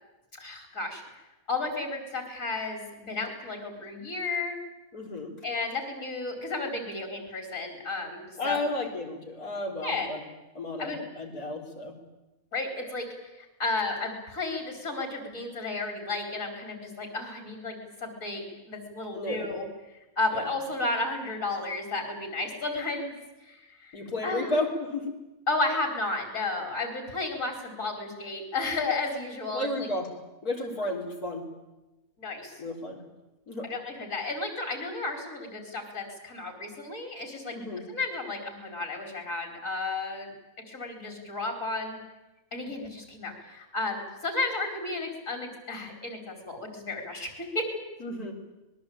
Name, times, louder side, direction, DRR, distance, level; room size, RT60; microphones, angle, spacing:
voice 1, 0.4-1.0 1.5-4.6 5.4-8.6 9.8-10.1 10.8-11.0 12.5-13.1 13.4-19.7 20.2-23.2 23.5-24.5 25.5-29.7 32.2-32.5 33.7-37.6 37.9-40.3 40.7-42.0 42.5-47.7, left 3 dB, 60° left, 4 dB, 5.4 m, -33 dB
voice 2, 4.9-5.4 8.4-10.2 10.5-11.9 19.1-19.5 20.3-20.5 23.9-25.1 29.5-30.1 30.4-31.4 32.6-33.0 33.5-33.7 37.5-37.9 48.0-48.3, left 1 dB, 90° left, 1 dB, 4.7 m, -32 dB
25.0 x 21.0 x 8.9 m, 1.0 s
omnidirectional pair, 1.5 m